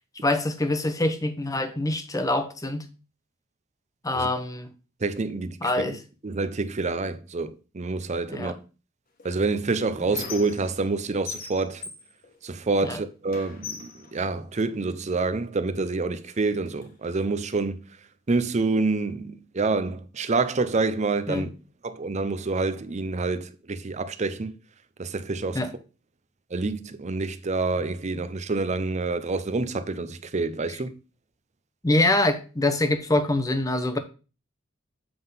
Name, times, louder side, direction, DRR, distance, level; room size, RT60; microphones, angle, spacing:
voice 1, 0.2-2.8 4.0-4.7 5.6-6.0 8.3-8.6 12.8-13.0 21.3-21.5 25.5-25.7 31.8-34.0, left 2 dB, 15° left, 0.8 m, -25 dB
voice 2, 5.0-5.6 6.2-8.5 9.2-11.8 12.4-17.8 18.3-21.5 21.8-24.5 25.0-25.6 26.5-30.9, right 3 dB, 35° right, 0.6 m, -27 dB
Squeak, 9.2-11.0 11.3-12.9 13.3-15.0 15.8-15.9 16.2-17.3, left 5 dB, 45° left, 1.3 m, -40 dB
7.7 x 3.7 x 5.6 m
head